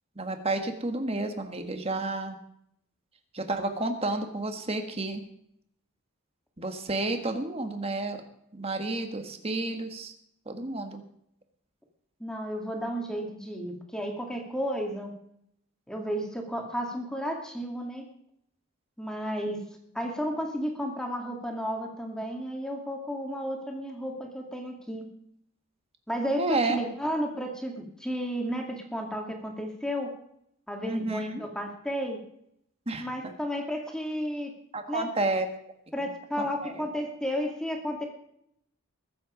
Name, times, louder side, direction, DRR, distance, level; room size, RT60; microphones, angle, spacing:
voice 1, 0.2-2.4 3.3-5.2 6.6-8.2 8.5-10.1 10.4-11.0 26.4-26.8 30.8-31.4 32.9-33.1 34.7-35.5 36.0-36.1 36.4-36.8, right 2 dB, 25° right, 6 dB, 1.6 m, -31 dB
voice 2, 12.2-15.1 15.9-18.0 19.0-19.6 19.9-25.1 26.1-30.1 30.7-32.2 33.0-34.5 34.9-35.1 35.9-38.0, equal, 5° left, 1 dB, 2.2 m, -32 dB
21.5 x 7.9 x 5.1 m, 0.74 s
head